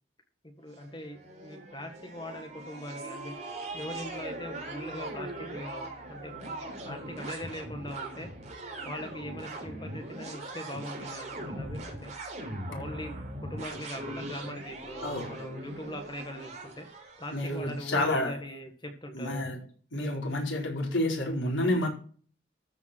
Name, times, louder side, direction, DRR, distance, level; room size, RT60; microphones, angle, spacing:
voice 1, 0.4-3.3 3.7-8.3 8.8-12.1 12.7-19.4, left 1 dB, 25° left, 4 dB, 1.7 m, -41 dB
sound 1, 0.7-17.8, right 2 dB, 35° right, 3.8 m, -40 dB
voice 2, 17.3-18.3 19.1-19.6 19.9-21.9, left 1 dB, 85° left, 0 dB, 4.5 m, -29 dB
14.0 x 5.8 x 6.1 m, 0.44 s
head